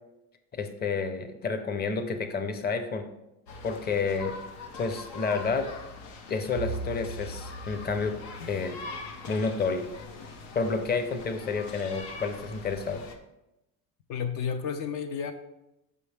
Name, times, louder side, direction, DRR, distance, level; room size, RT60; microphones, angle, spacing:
voice 1, 0.5-3.0 3.6-4.4 4.8-5.7 6.3-8.2 8.5-8.8 9.3-9.9 10.5-13.0, left 4 dB, 25° left, 8 dB, 0.7 m, -30 dB
sound 1, 3.5-13.1, left 4 dB, 85° left, 1.0 m, -43 dB
Bowed string instrument, 6.5-10.7, right 4 dB, 85° right, 0.6 m, -41 dB
voice 2, 14.1-15.3, left 7 dB, 60° left, 8 dB, 0.6 m, -31 dB
6.8 x 5.5 x 3.4 m, 0.92 s
cardioid pair, 115°, 37 cm